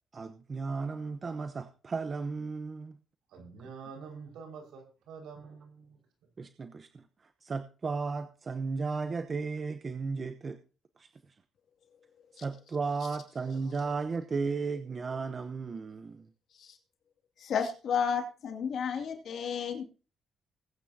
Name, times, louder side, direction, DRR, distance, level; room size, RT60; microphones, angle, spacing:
voice 1, 0.1-3.0 6.4-10.6 11.0-11.1 12.3-16.3, right 4 dB, 40° right, 0.9 m, -35 dB
voice 2, 3.3-6.0, right 5 dB, 85° right, 5.2 m, -47 dB
voice 3, 17.4-19.8, left 7 dB, 65° left, 2.6 m, -32 dB
21.0 x 8.8 x 2.8 m
cardioid pair, 90°, 0 cm